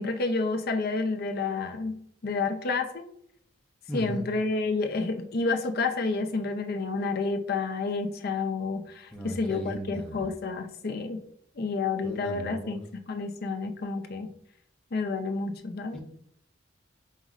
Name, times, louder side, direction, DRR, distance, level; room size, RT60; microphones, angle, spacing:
voice 1, 0.0-3.0 3.9-11.2 11.6-12.8 13.1-14.3 14.9-16.0, left 3 dB, 50° left, 6 dB, 0.5 m, -30 dB
voice 2, 3.9-4.3 9.1-10.3 12.0-12.8 15.9-16.0, equal, 5° left, -1 dB, 0.8 m, -37 dB
5.5 x 3.0 x 2.4 m, 0.67 s
head